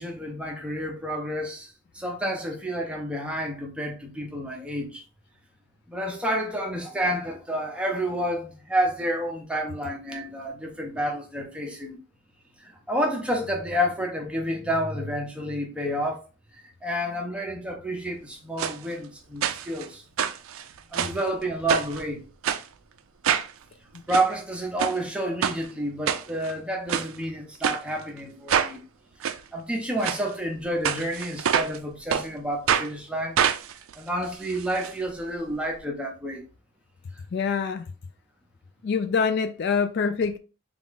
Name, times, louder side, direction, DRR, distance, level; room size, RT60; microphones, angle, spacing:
voice 1, 0.0-5.0 5.9-12.0 12.6-16.2 16.5-20.0 20.9-22.3 24.1-28.8 29.3-33.4 34.0-36.4, equal, 5° right, 0.6 m, -29 dB
sound 1, 18.6-18.8 19.4-19.9 20.2-21.2 21.7-22.0 22.4-22.6 23.2-23.5 23.9-24.3 24.8-25.0 25.4-25.6 26.1-26.5 26.9-27.1 27.6-27.8 28.5-28.7 29.2-29.4 30.0-30.2 30.8-31.8 32.1-32.3 32.7-32.9 33.4-34.9 35.2-35.3 35.5-35.6, right 8 dB, 70° right, 0.4 m, -25 dB
voice 2, 37.3-37.8 38.8-40.4, left 5 dB, 50° left, 0.3 m, -25 dB
3.7 x 2.4 x 3.6 m
head